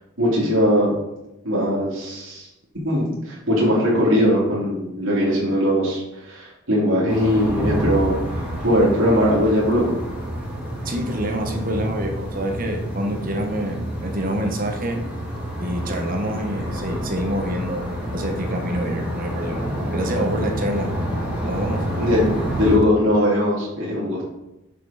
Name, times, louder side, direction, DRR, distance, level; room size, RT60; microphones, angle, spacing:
voice 1, 0.2-0.9 1.4-2.5 2.8-8.1 8.6-10.0 22.0-22.2 22.6-24.2, equal, 85° right, -6 dB, 2.7 m, -20 dB
sound 1, 7.1-22.8, equal, 5° right, 2.5 m, -28 dB
voice 2, 10.8-15.0 15.6-20.9 21.4-21.8, right 1 dB, 45° right, 4 dB, 1.2 m, -27 dB
6.8 x 6.6 x 5.0 m, 0.93 s
head